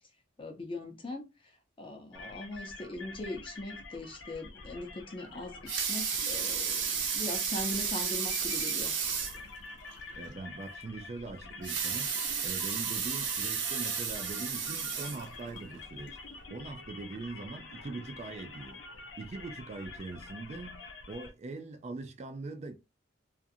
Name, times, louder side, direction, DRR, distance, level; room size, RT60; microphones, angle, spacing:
voice 1, 0.4-1.2 1.8-6.9 7.1-8.9, left 2 dB, 30° left, 0.6 m, -40 dB
sound 1, 2.1-21.3, left 3 dB, 80° left, 0.7 m, -47 dB
Water tap faucet / Sink (filling or washing) / Liquid, 5.5-9.4 9.9-10.0 10.3-10.4 11.5-15.6 16.2-16.3, right 6 dB, 90° right, 0.8 m, -33 dB
voice 2, 10.1-16.2 16.5-18.8 19.2-22.7, right 3 dB, 35° right, 0.3 m, -42 dB
2.4 x 2.4 x 2.6 m
head